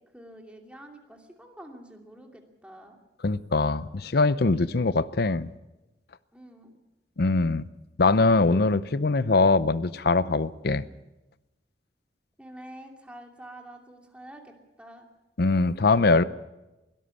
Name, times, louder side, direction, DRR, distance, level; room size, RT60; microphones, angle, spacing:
voice 1, 0.1-3.0 6.3-6.8 12.4-15.1, right 1 dB, 5° right, 2 dB, 2.7 m, -47 dB
voice 2, 3.2-5.5 7.2-7.6 8.0-10.9 15.4-16.2, left 3 dB, 60° left, 16 dB, 0.7 m, -22 dB
22.0 x 13.0 x 9.7 m, 1.0 s
head